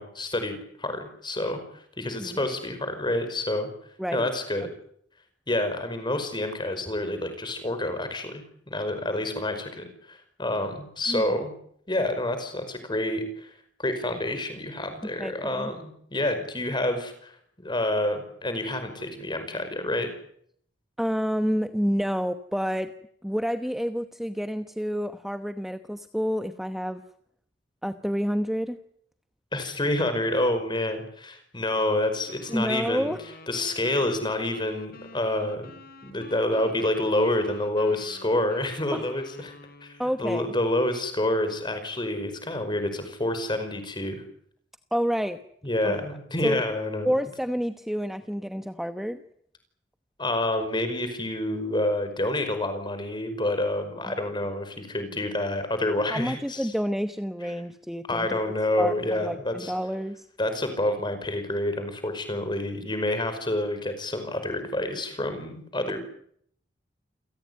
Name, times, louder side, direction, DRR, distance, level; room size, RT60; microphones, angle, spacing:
voice 1, 0.0-3.7 4.1-4.7 5.5-11.5 11.9-13.5 13.8-20.1 29.5-33.1 33.5-35.7 36.0-39.5 39.8-39.9 40.2-44.2 45.6-47.1 50.2-56.7 58.1-59.7 60.4-66.0, left 1 dB, 25° left, 8 dB, 5.2 m, -28 dB
voice 2, 11.1-11.4 15.2-15.7 21.0-22.9 23.2-27.0 27.8-28.8 32.5-33.2 38.9-39.1 40.0-40.5 44.9-45.4 45.8-45.9 46.4-46.6 47.0-49.2 54.2-54.3 56.1-58.4 58.8-60.3, equal, ahead, 8 dB, 1.0 m, -29 dB
sound 1, 32.3-40.2, left 2 dB, 55° left, 3.8 m, -48 dB
28.5 x 17.5 x 9.5 m, 0.68 s
head